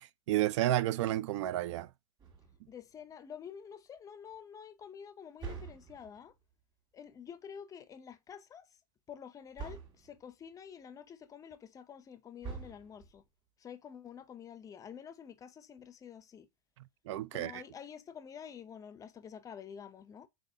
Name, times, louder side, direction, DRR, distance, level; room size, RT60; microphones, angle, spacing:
voice 1, 0.0-1.9 17.1-17.6, right 14 dB, 70° right, 0.4 m, -31 dB
sound 1, 2.2-2.9 5.4-6.3 9.6-10.2 12.4-13.2, right 5 dB, 25° right, 1.9 m, -45 dB
voice 2, 2.7-6.4 6.9-8.7 9.1-13.2 13.6-16.5 17.3-20.3, left 8 dB, 20° left, 0.5 m, -49 dB
4.0 x 3.9 x 2.7 m
hypercardioid pair, 125°, 16 cm